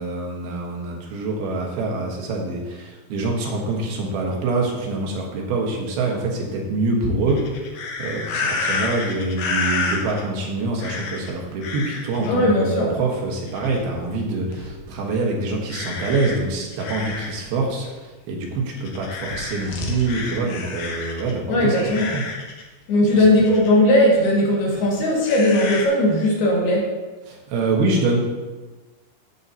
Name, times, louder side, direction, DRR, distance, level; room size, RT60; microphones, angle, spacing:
voice 1, 0.0-7.5 8.0-22.2 27.3-28.2, right 3 dB, 80° right, -1 dB, 3.2 m, -25 dB
sound 1, 7.3-10.2 10.8-11.3 11.6-12.3 13.5-14.0 14.5-14.7 15.7-17.4 17.8-17.9 18.8-21.3 21.7-22.6 23.4-23.7 25.2-25.9, left 4 dB, 70° left, 2.4 m, -29 dB
voice 2, 12.3-13.0 21.5-22.1 22.9-26.9, left 1 dB, 85° left, -4 dB, 3.9 m, -18 dB
13.5 x 6.6 x 2.8 m, 1.3 s
omnidirectional pair, 4.4 m